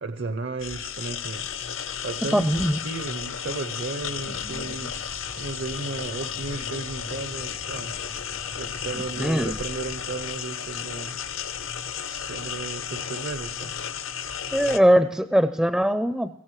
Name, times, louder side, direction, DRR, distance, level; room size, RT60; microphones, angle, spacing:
voice 1, 0.0-1.5 2.0-5.0 5.4-8.0 8.5-11.2 12.0-13.8, right 3 dB, 60° right, 0.6 m, -34 dB
sound 1, 0.6-14.8, left 8 dB, 75° left, 0.8 m, -33 dB
voice 2, 2.3-2.8 4.5-4.6 9.2-9.6 14.5-16.4, equal, ahead, 0.4 m, -21 dB
sound 2, 4.0-10.3, right 1 dB, 90° right, 2.0 m, -45 dB
22.5 x 16.0 x 3.2 m
head